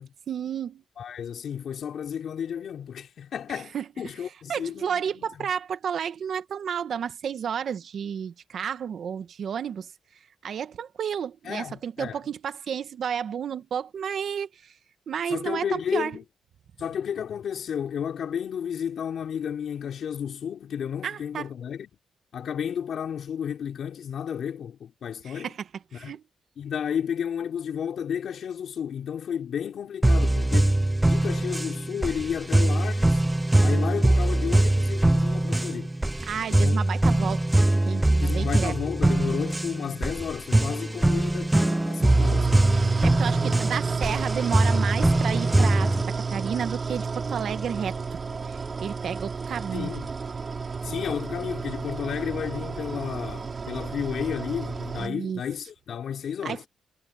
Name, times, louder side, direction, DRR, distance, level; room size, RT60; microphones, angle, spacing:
voice 1, 0.3-0.8 3.7-3.8 4.2-9.9 10.4-14.7 15.1-16.2 21.0-21.5 25.3-25.5 25.9-26.2 36.2-37.4 37.8-38.7 43.0-48.0 48.4-49.9 55.0-55.4 56.4-56.7, right 8 dB, 65° right, 1.3 m, -31 dB
voice 2, 1.0-5.5 11.4-12.2 15.2-16.2 16.8-21.9 22.3-25.5 25.9-26.1 26.6-33.3 33.6-35.9 36.4-36.8 38.2-42.6 43.4-43.5 44.1-44.2 49.7-50.1 50.8-56.6, left 8 dB, 70° left, 4.9 m, -32 dB
sound 1, 30.0-46.0, right 1 dB, 10° right, 0.4 m, -22 dB
sound 2, 42.0-55.1, right 5 dB, 40° right, 5.5 m, -30 dB
cardioid pair, 100°, 0 cm